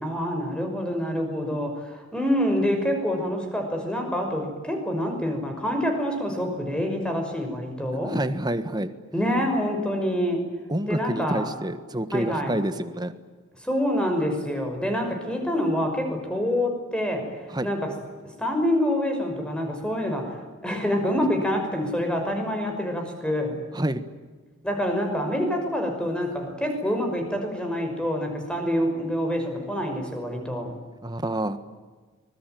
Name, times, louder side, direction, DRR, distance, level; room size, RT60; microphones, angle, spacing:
voice 1, 0.0-8.2 9.1-10.5 10.9-11.5 12.1-12.6 13.6-17.3 17.6-17.9 18.4-20.4 20.6-23.6 24.6-30.7, equal, 5° left, 4 dB, 5.8 m, -26 dB
voice 2, 8.0-8.9 10.7-13.1 17.5-17.7 23.7-24.0 31.0-31.6, right 1 dB, 20° right, 11 dB, 1.4 m, -28 dB
25.5 x 21.0 x 9.3 m, 1.4 s
head